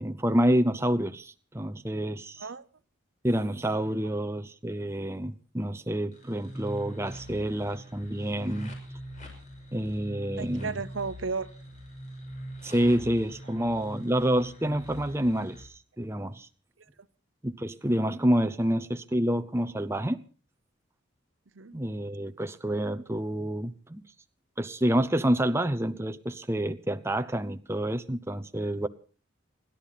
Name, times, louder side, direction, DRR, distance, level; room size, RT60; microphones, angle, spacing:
voice 1, 0.0-2.5 3.2-8.7 9.7-10.8 12.6-16.5 17.4-20.2 21.7-24.0 24.6-28.9, right 1 dB, 15° right, 0.8 m, -28 dB
sound 1, 6.1-15.6, equal, 35° left, 5.9 m, -43 dB
voice 2, 10.4-11.5 13.8-13.9 21.5-21.7, right 4 dB, 75° right, 0.9 m, -34 dB
29.0 x 11.5 x 4.2 m
head